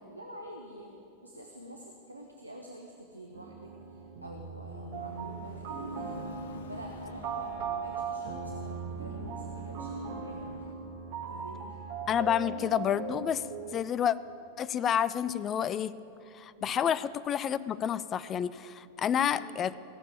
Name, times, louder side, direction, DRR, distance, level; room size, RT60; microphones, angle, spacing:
voice 1, 0.1-10.7 11.3-11.8 16.6-16.8 19.1-19.5, right 1 dB, 85° right, 1 dB, 1.1 m, -47 dB
sound 1, 3.3-13.7, right 6 dB, 45° right, 1.5 m, -39 dB
sound 2, 4.9-10.7, left 7 dB, 60° left, 0.8 m, -50 dB
voice 2, 12.1-13.4 13.7-14.2 14.6-15.9 16.3-19.7, left 9 dB, 25° left, 17 dB, 0.4 m, -29 dB
17.0 x 7.4 x 8.8 m, 2.7 s
figure-of-eight pair, 90°, 0 cm